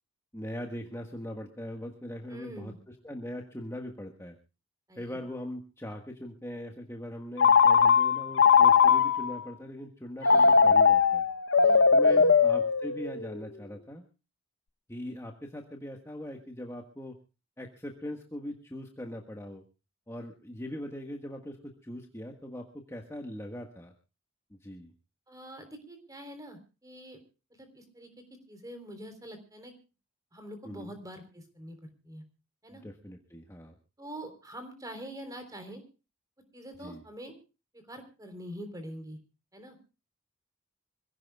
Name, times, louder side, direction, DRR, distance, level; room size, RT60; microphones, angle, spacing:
voice 1, 0.3-4.4 5.0-11.3 11.9-14.0 14.9-17.2 17.6-19.6 20.1-23.9 24.6-24.9 30.6-30.9 32.7-33.8 36.8-37.0, left 1 dB, 10° left, 2 dB, 1.4 m, -41 dB
voice 2, 2.3-2.8 4.9-5.2 10.2-10.7 11.6-12.3 25.3-27.2 27.5-28.1 28.5-29.7 30.3-32.2 32.6-32.8 34.0-35.8 36.5-37.4 37.7-39.2 39.5-39.8, equal, 15° right, 7 dB, 3.6 m, -45 dB
Telephone, 7.4-9.4 10.2-13.3, left 5 dB, 55° left, 0.9 m, -20 dB
26.0 x 16.5 x 2.3 m, 0.32 s
head